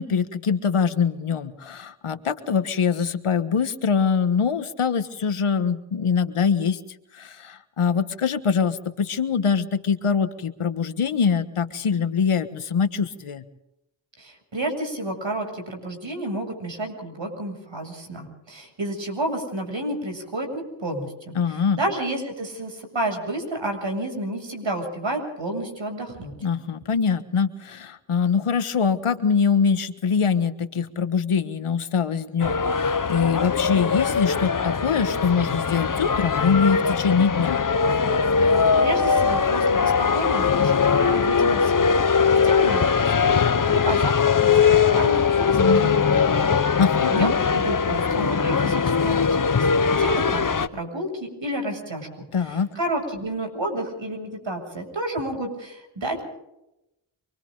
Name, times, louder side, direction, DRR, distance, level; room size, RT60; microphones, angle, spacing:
voice 1, 0.0-6.8 7.1-13.4 21.3-21.8 26.4-37.6 46.8-47.3 52.3-52.7, left 6 dB, 80° left, 10 dB, 1.5 m, -23 dB
voice 2, 14.2-26.3 38.4-46.6 47.1-52.1 52.3-56.2, right 1 dB, 60° right, 4 dB, 7.8 m, -31 dB
sound 1, 32.4-50.7, left 5 dB, 40° left, 1.0 m, -21 dB
29.5 x 23.5 x 4.0 m, 0.90 s
cardioid pair, 45°, 50 cm